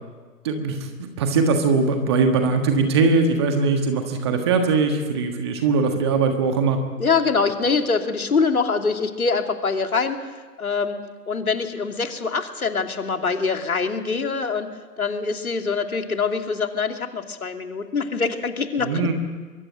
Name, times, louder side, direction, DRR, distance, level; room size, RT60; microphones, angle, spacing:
voice 1, 0.4-6.8 18.8-19.1, right 4 dB, 15° right, 6 dB, 1.4 m, -21 dB
voice 2, 7.0-10.2 10.6-14.7 15.0-19.1, left 4 dB, 60° left, 5 dB, 2.7 m, -24 dB
23.5 x 23.5 x 7.9 m, 1.4 s
figure-of-eight pair, 145°, 48 cm